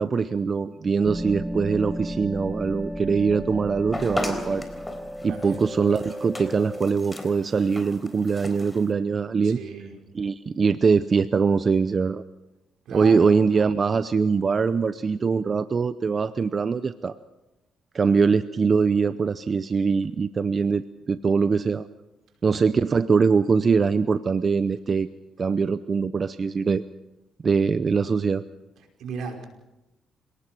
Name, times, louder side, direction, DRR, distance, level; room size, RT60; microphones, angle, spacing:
voice 1, 0.0-4.6 5.2-9.6 10.1-12.2 12.9-17.2 17.9-21.9 22.4-25.1 25.4-26.8 27.4-28.5, right 5 dB, 40° right, 13 dB, 0.7 m, -22 dB
sound 1, 1.0-6.9, equal, 5° right, 1.0 m, -34 dB
sound 2, 3.9-8.9, left 1 dB, 15° left, 3.9 m, -36 dB
voice 2, 5.3-5.7 9.4-9.9 12.9-13.3 29.0-29.4, right 5 dB, 75° right, 3 dB, 5.3 m, -36 dB
27.0 x 18.5 x 6.1 m, 0.98 s
cardioid pair, 90°, 0 cm